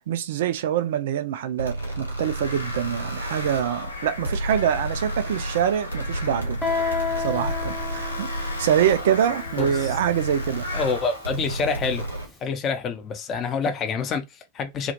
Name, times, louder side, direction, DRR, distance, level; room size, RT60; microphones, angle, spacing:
voice 1, 0.1-6.6 7.2-10.7, right 9 dB, 55° right, 0.3 m, -25 dB
sound 1, 1.6-12.3, right 1 dB, 85° right, 0.8 m, -32 dB
sound 2, 2.2-11.0, left 2 dB, 85° left, 0.5 m, -36 dB
Guitar, 6.6-12.1, left 5 dB, 10° left, 0.8 m, -32 dB
voice 2, 9.6-9.9 10.7-12.1 12.4-14.9, left 5 dB, 30° left, 0.5 m, -27 dB
2.1 x 2.1 x 2.8 m
figure-of-eight pair, 90°, 0 cm